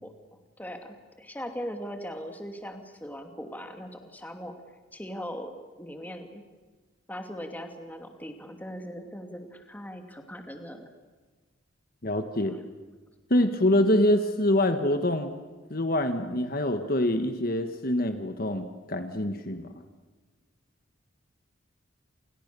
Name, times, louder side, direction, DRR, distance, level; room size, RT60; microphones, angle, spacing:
voice 1, 0.6-4.5 4.9-5.5 5.8-6.4 7.1-10.9 12.4-12.6, equal, 10° left, 5 dB, 2.5 m, -39 dB
voice 2, 12.0-12.6 13.3-15.3 15.7-19.7, left 1 dB, 45° left, 7 dB, 1.5 m, -25 dB
29.0 x 28.0 x 6.9 m, 1.3 s
head